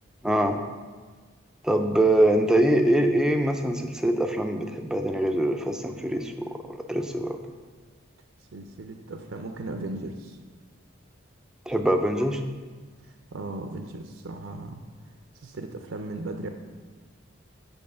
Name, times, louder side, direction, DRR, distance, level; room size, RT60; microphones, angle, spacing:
voice 1, 0.2-0.6 1.6-7.4 11.7-12.4, right 1 dB, 5° right, 5 dB, 0.4 m, -23 dB
voice 2, 8.5-10.4 13.0-14.8 15.3-16.5, right 2 dB, 70° right, 5 dB, 0.5 m, -37 dB
6.4 x 5.4 x 6.7 m, 1.4 s
head